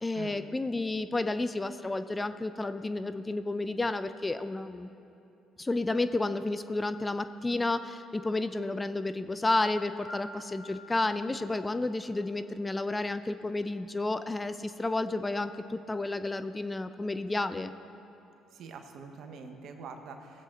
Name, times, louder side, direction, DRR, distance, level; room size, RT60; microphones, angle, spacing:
voice 1, 0.0-4.9 5.6-17.7, left 2 dB, 20° left, 11 dB, 0.5 m, -31 dB
Piano, 10.1-12.0, left 1 dB, 45° left, 2.9 m, -48 dB
voice 2, 18.5-20.4, right 5 dB, 65° right, 5 dB, 1.1 m, -45 dB
18.0 x 7.7 x 3.8 m, 2.8 s
hypercardioid pair, 60°, 0 cm